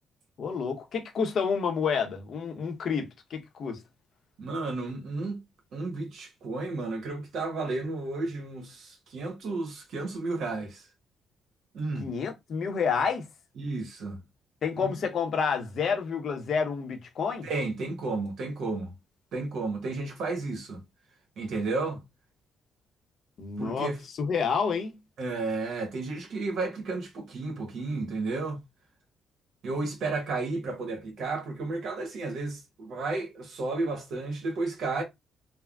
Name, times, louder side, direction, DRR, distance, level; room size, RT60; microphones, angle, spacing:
voice 1, 0.4-3.8 12.0-13.3 14.6-17.5 23.4-23.9 24.2-25.0, left 6 dB, 60° left, 0.7 m, -29 dB
voice 2, 4.4-5.4 5.7-10.8 11.7-12.1 13.6-14.2 14.8-14.9 17.4-18.9 19.3-20.8 21.4-22.0 23.6-24.0 25.2-28.6 29.6-35.0, right 3 dB, 70° right, 1.1 m, -32 dB
3.4 x 2.1 x 2.3 m
cardioid pair, 90°, 0 cm